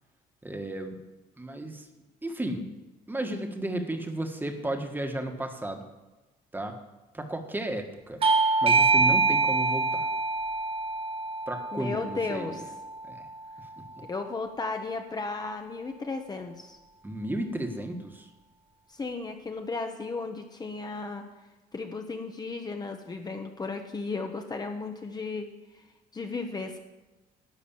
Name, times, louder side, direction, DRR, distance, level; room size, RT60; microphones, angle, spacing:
voice 1, 0.4-1.0 1.4-1.9 2.2-2.6 3.1-5.9 6.5-6.8 7.1-8.2 8.6-10.1 11.5-12.6 13.1-13.3 17.0-18.3, right 1 dB, 10° right, 5 dB, 1.5 m, -33 dB
Bell / Doorbell, 8.2-13.4, right 4 dB, 35° right, 1.2 m, -25 dB
voice 2, 11.7-12.6 14.1-16.8 18.9-21.2 21.7-25.5 25.7-25.8 26.1-26.8, left 3 dB, 25° left, 5 dB, 1.1 m, -34 dB
11.5 x 6.1 x 8.8 m, 1.1 s
cardioid pair, 110°, 17 cm